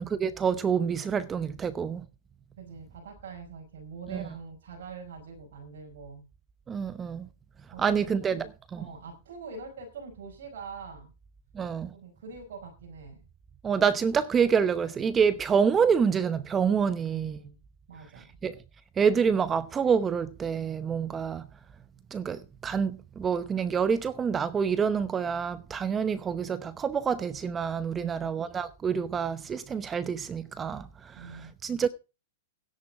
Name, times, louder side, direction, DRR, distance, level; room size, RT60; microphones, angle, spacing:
voice 1, 0.0-2.0 4.1-4.3 6.7-7.3 7.8-8.8 11.5-11.9 13.6-17.4 18.2-18.6 19.0-21.5 22.1-31.9, right 6 dB, 20° right, 0.8 m, -27 dB
voice 2, 2.6-6.3 7.7-8.5 8.8-11.1 11.9-13.2 17.0-17.6 17.9-18.3 27.9-28.4 31.1-31.5, right 5 dB, 70° right, 5.1 m, -44 dB
16.0 x 10.5 x 3.8 m
hypercardioid pair, 120°, 0 cm